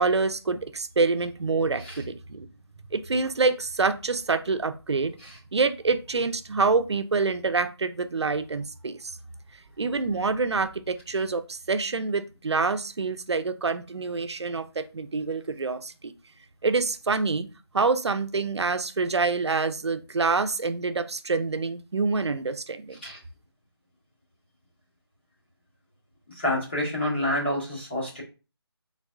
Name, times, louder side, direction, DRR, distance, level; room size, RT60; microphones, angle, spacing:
voice 1, 0.0-2.5 2.9-5.1 5.5-9.1 9.8-16.1 16.6-17.5 17.7-23.0, right 4 dB, 80° right, 10 dB, 0.6 m, -26 dB
voice 2, 26.3-28.2, left 1 dB, 25° left, -5 dB, 1.4 m, -28 dB
4.2 x 3.9 x 2.4 m, 0.31 s
figure-of-eight pair, 175°, 14 cm